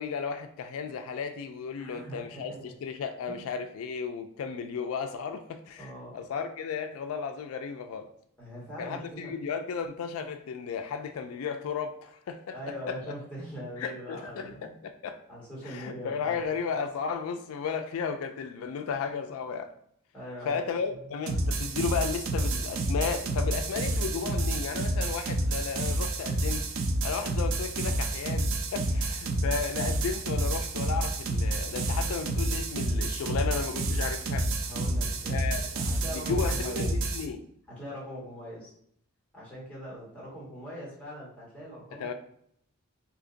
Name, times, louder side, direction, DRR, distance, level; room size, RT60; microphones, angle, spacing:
voice 1, 0.0-8.1 8.8-12.6 12.9-13.0 13.8-15.2 15.7-19.7 20.5-26.6 27.0-34.5 35.3-35.6 36.3-37.4 42.0-42.1, left 6 dB, 80° left, 7 dB, 0.3 m, -34 dB
voice 2, 1.8-2.6 3.2-3.5 5.8-6.2 8.4-9.3 12.5-14.7 15.3-16.4 20.1-20.6 20.9-21.0 34.6-36.9 37.7-38.7 39.3-42.1, equal, 5° left, -6 dB, 1.3 m, -42 dB
sound 1, 21.3-37.3, right 2 dB, 70° right, 0.5 m, -29 dB
2.8 x 2.5 x 3.8 m, 0.68 s
head